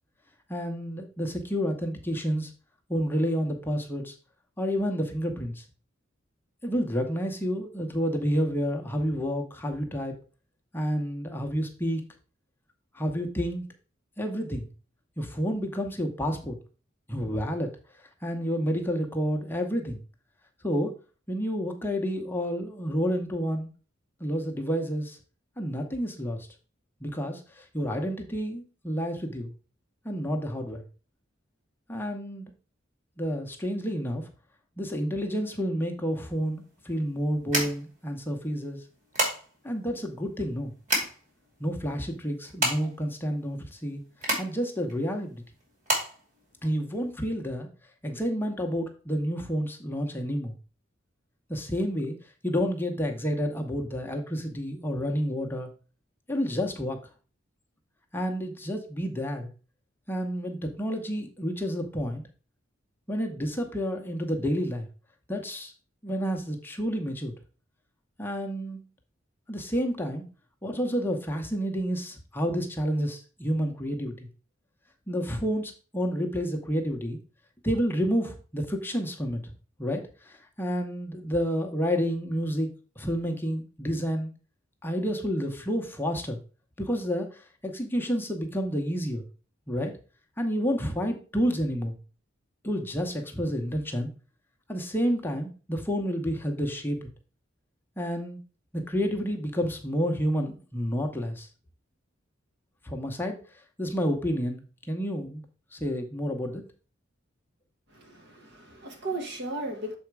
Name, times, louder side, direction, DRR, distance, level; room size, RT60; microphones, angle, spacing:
voice 1, 0.5-2.5 2.9-4.1 4.6-5.6 6.6-10.1 10.7-12.0 12.9-13.6 14.2-14.7 15.2-16.6 17.1-17.7 18.2-20.0 20.6-20.9 21.3-23.7 24.2-25.2 25.6-26.5 27.0-29.5 30.0-30.8 31.9-32.4 33.2-34.2 34.8-38.8 39.6-40.7 41.6-44.0 44.4-45.4 46.6-47.7 48.0-50.5 51.5-52.1 52.4-55.7 56.3-57.0 58.1-59.5 60.1-62.2 63.1-64.9 65.3-65.7 66.0-67.3 68.2-68.8 69.5-70.3 70.6-74.3 75.1-77.2 77.6-79.4 79.8-82.7 83.0-84.3 84.8-86.4 86.8-89.2 89.7-89.9 90.4-92.0 92.6-94.1 94.7-97.0 98.0-98.4 98.7-101.5 102.8-103.4 103.8-105.4 105.7-106.6, equal, 10° left, 0.8 m, -29 dB
sound 1, 36.1-47.2, right 1 dB, 40° right, 2.6 m, -32 dB
voice 2, 107.9-109.9, right 2 dB, 60° right, 1.3 m, -36 dB
6.9 x 4.2 x 4.7 m
head